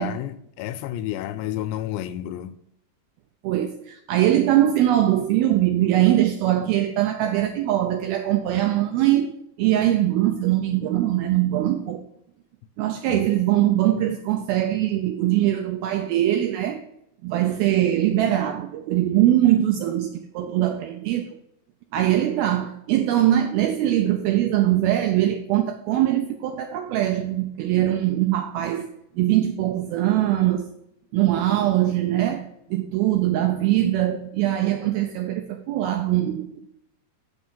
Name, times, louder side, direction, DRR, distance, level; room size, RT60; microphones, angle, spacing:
voice 1, 0.0-2.6 13.1-13.3, left 12 dB, 85° left, 2.8 m, -31 dB
voice 2, 3.4-12.0 12.8-16.8 17.2-21.4 21.9-28.9 29.2-30.7 31.1-36.7, right 13 dB, 85° right, 2.1 m, -22 dB
7.9 x 6.3 x 5.5 m
omnidirectional pair, 4.9 m